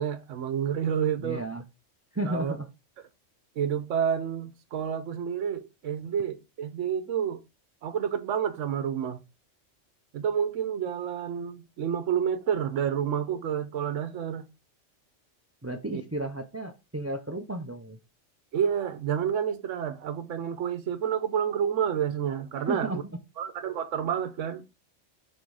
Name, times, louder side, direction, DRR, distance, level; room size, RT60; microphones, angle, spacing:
voice 1, 0.0-1.4 2.3-2.5 3.6-7.4 7.8-9.2 10.1-14.4 15.9-16.0 18.5-23.0 23.4-24.6, right 8 dB, 80° right, 1.1 m, -29 dB
voice 2, 1.2-1.6 2.1-2.7 15.6-18.0 22.7-23.0, right 1 dB, 20° right, 0.4 m, -33 dB
6.5 x 3.6 x 4.7 m
omnidirectional pair, 1.3 m